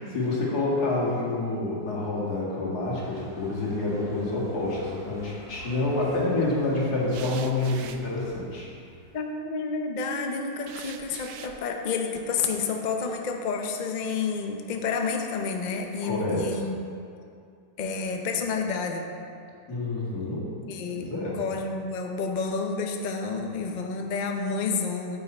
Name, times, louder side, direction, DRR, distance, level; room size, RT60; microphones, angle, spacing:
voice 1, 0.0-8.7 16.0-16.6 19.7-20.5 20.9-21.4, left 2 dB, 60° left, -5 dB, 2.4 m, -28 dB
sound 1, 3.0-8.4, right 1 dB, 5° right, 0.5 m, -46 dB
sound 2, 4.8-5.4 7.1-9.1 10.7-11.6, right 8 dB, 75° right, 1.2 m, -44 dB
voice 2, 9.1-16.8 17.8-19.1 20.7-21.1 21.3-25.2, left 4 dB, 85° left, 3 dB, 0.4 m, -30 dB
8.7 x 8.2 x 4.3 m, 2.4 s
omnidirectional pair, 1.9 m